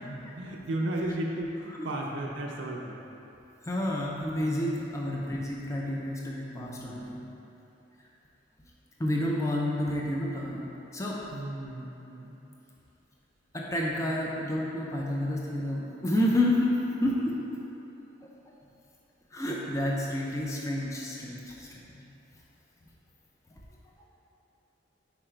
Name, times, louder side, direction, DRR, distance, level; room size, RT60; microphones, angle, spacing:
voice 1, 0.0-3.0 5.0-5.2 6.5-7.3 11.3-12.4, right 1 dB, 70° right, -2 dB, 0.5 m, -35 dB
voice 2, 3.6-7.2 9.0-11.2 13.5-16.7 17.0-17.6 18.2-18.3 19.3-21.8 23.5-23.6, left 1 dB, 15° left, -3 dB, 0.4 m, -30 dB
5.0 x 4.6 x 4.4 m, 3.0 s
head